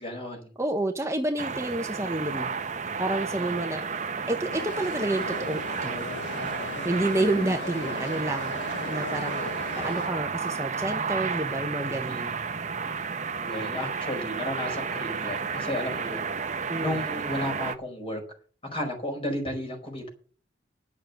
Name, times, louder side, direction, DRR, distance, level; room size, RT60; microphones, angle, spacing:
voice 1, 0.0-0.5 3.4-3.6 6.3-6.6 12.0-12.4 13.4-16.3 16.8-18.2 18.7-20.1, left 1 dB, 30° left, 2 dB, 5.1 m, -33 dB
voice 2, 0.6-2.5 3.0-3.8 4.3-6.1 6.8-8.6 8.9-9.5 9.8-12.4 16.7-17.0, right 1 dB, 15° right, 4 dB, 1.1 m, -29 dB
sound 1, 1.4-17.8, right 5 dB, 40° right, 1.0 m, -32 dB
sound 2, 4.5-10.1, left 3 dB, 80° left, 0.9 m, -38 dB
11.0 x 7.7 x 7.9 m, 0.41 s
head